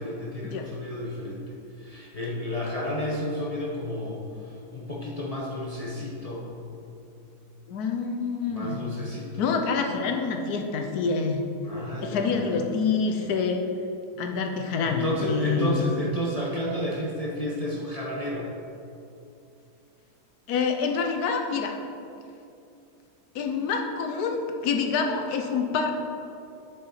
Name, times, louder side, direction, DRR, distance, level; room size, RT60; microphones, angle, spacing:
voice 1, 0.0-1.4 1.8-6.5 8.5-9.4 11.6-12.6 14.8-18.5, equal, 30° left, -3 dB, 0.7 m, -31 dB
voice 2, 7.7-8.8 9.4-11.4 12.0-13.6 14.2-15.9 20.5-21.7 23.3-25.9, left 5 dB, 70° left, 4 dB, 1.2 m, -26 dB
8.0 x 6.6 x 4.2 m, 2.7 s
omnidirectional pair, 1.8 m